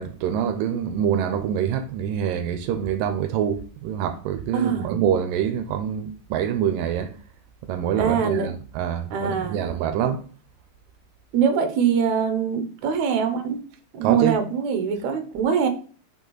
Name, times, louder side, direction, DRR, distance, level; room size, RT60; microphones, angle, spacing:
voice 1, 0.0-7.1 7.7-10.2 14.0-14.4, right 9 dB, 85° right, 2.3 m, -25 dB
voice 2, 4.5-4.9 8.0-8.5 9.1-9.7 11.3-13.6 13.9-15.7, right 7 dB, 70° right, 2.1 m, -23 dB
6.5 x 5.3 x 3.9 m
omnidirectional pair, 4.0 m